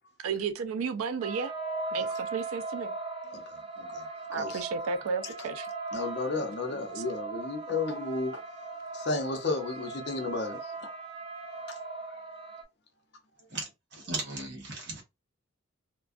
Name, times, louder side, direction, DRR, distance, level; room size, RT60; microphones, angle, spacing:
voice 1, 0.2-1.5 1.9-2.9 4.3-5.7 7.0-7.1, right 5 dB, 90° right, 0.4 m, -33 dB
sound 1, 1.2-12.6, right 3 dB, 25° right, 0.4 m, -38 dB
voice 2, 3.3-4.1 4.3-4.6 5.9-8.4 8.9-10.9 11.7-11.8 12.1-12.2, left 3 dB, 50° left, 0.6 m, -33 dB
voice 3, 13.5-15.0, right 3 dB, 55° right, 1.0 m, -37 dB
2.4 x 2.2 x 2.4 m
head